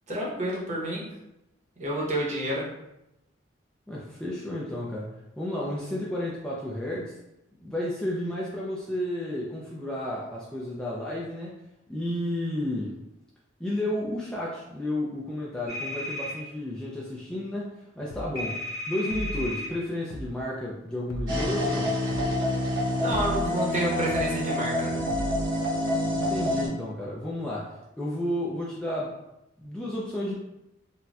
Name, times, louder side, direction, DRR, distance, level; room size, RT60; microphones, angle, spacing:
voice 1, 0.1-1.0 1.8-2.7 23.0-24.9, right 1 dB, 40° right, -4 dB, 0.8 m, -29 dB
voice 2, 3.9-7.2 7.6-11.5 11.9-13.0 13.6-18.6 18.9-22.0 26.1-29.2 29.6-30.3, left 1 dB, 5° left, -6 dB, 0.3 m, -32 dB
sound 1, 15.7-16.3 18.4-19.7, left 1 dB, 35° left, 1.2 m, -34 dB
sound 2, 18.1-18.3 19.1-19.5 20.1-20.3 21.1-21.5 22.1-22.3 23.1-23.5 24.1-24.3 25.1-25.5, equal, 85° left, 0.4 m, -35 dB
sound 3, 21.3-26.7, left 1 dB, 70° right, 1.0 m, -27 dB
4.0 x 2.2 x 2.3 m, 0.88 s
head